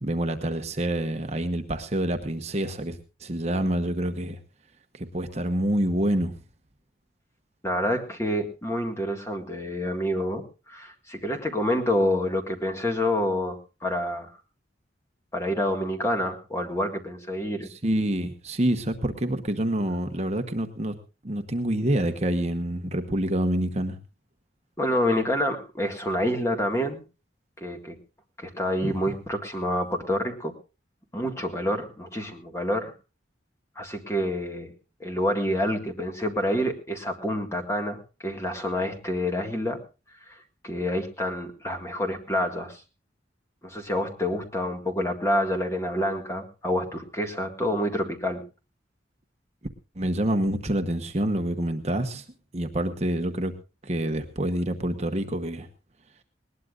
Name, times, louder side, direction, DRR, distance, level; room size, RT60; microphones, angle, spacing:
voice 1, 0.0-4.4 4.9-6.3 17.7-20.9 21.2-24.0 28.8-28.9 50.0-52.2 52.5-53.5 53.8-55.7, right 1 dB, 35° right, 6 dB, 1.1 m, -27 dB
voice 2, 7.6-14.3 15.3-17.7 24.8-27.0 27.6-28.0 28.4-30.5 31.1-32.9 33.8-34.7 35.0-39.8 40.3-40.4 40.6-42.8 43.6-48.4, left 1 dB, 15° left, 4 dB, 1.8 m, -28 dB
20.5 x 19.0 x 2.5 m, 0.31 s
head